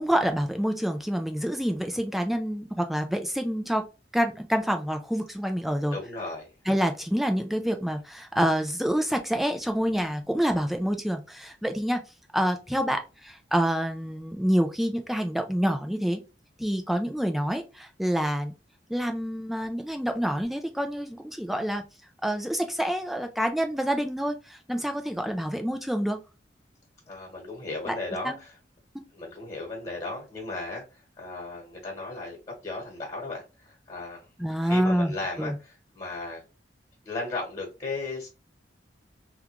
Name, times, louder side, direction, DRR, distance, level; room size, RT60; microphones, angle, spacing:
voice 1, 0.0-3.8 4.1-6.0 6.7-12.0 12.3-16.2 16.6-18.5 18.9-21.8 22.2-26.2 27.9-28.0 28.2-28.4 34.4-35.1 35.4-35.5, equal, ahead, 0.3 m, -27 dB
voice 2, 5.9-6.5 27.1-28.5 29.1-34.3 34.6-36.4 37.0-38.3, left 2 dB, 25° left, 1.3 m, -36 dB
3.6 x 2.3 x 2.8 m
head